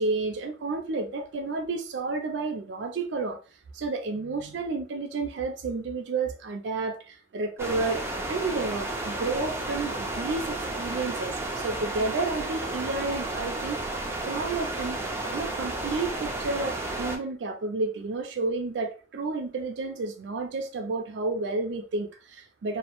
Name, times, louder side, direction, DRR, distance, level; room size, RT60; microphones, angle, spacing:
voice 1, 0.0-3.4 3.7-13.8 14.3-15.0 15.3-22.8, right 3 dB, 80° right, 0.4 m, -31 dB
sound 1, 7.6-17.2, right 2 dB, 15° right, 0.4 m, -32 dB
2.2 x 2.0 x 2.9 m
head